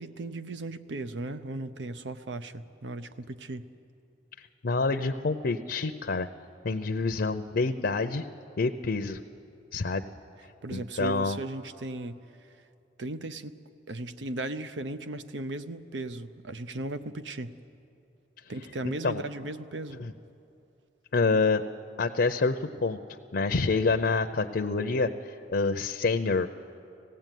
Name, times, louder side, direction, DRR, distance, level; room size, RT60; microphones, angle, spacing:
voice 1, 0.0-3.7 10.6-12.5 13.0-13.6 13.9-17.6 18.5-20.0, right 2 dB, 80° right, 11 dB, 0.7 m, -37 dB
voice 2, 4.6-6.3 6.6-8.2 8.6-9.2 9.7-10.0 10.7-11.4 18.8-19.2 20.0-20.1 21.1-21.6 22.0-23.0 23.3-25.1 25.5-26.5, left 3 dB, 65° left, 7 dB, 0.6 m, -27 dB
19.5 x 16.0 x 9.2 m, 2.7 s
head